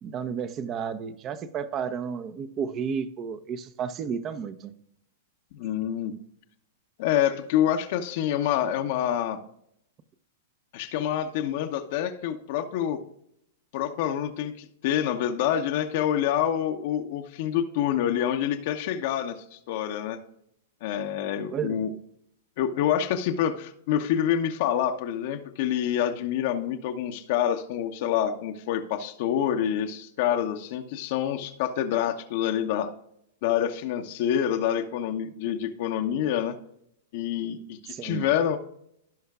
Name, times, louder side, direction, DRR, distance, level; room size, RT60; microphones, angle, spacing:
voice 1, 0.0-4.7 21.5-21.9 37.9-38.3, right 7 dB, 30° right, 12 dB, 0.8 m, -32 dB
voice 2, 5.5-6.1 7.0-9.4 10.7-13.0 13.7-20.2 20.8-21.9 22.6-32.9 33.4-36.6 37.1-38.6, left 10 dB, 55° left, 5 dB, 0.9 m, -27 dB
16.5 x 5.6 x 2.4 m, 0.74 s
hypercardioid pair, 105°, 0 cm